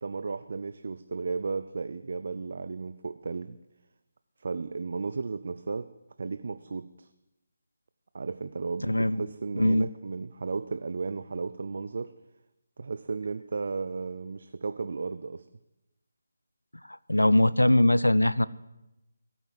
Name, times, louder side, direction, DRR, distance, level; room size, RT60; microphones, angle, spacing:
voice 1, 0.0-3.6 4.4-5.9 6.2-7.1 8.1-12.1 12.8-15.5, right 4 dB, 55° right, 12 dB, 0.6 m, -34 dB
voice 2, 8.9-9.2 9.6-9.9 16.9-18.5, left 1 dB, 90° left, 19 dB, 0.6 m, -22 dB
16.0 x 9.0 x 7.8 m, 0.95 s
figure-of-eight pair, 150°, 0 cm